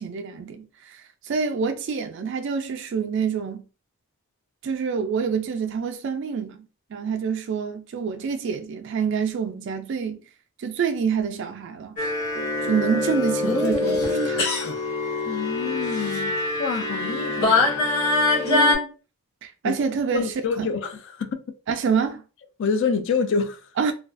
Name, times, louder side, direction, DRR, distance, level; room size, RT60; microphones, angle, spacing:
voice 1, 0.0-3.6 4.6-6.7 6.9-10.2 10.6-12.0 12.6-14.4 18.5-18.9 19.4-20.7 21.7-22.2 23.8-23.9, right 6 dB, 55° right, 0.3 m, -27 dB
sound 1, 12.0-18.8, left 2 dB, 80° left, 0.9 m, -23 dB
voice 2, 15.2-17.9 19.6-19.8 20.1-21.4 22.6-23.6, left 5 dB, 55° left, 0.3 m, -27 dB
2.3 x 2.2 x 2.4 m
head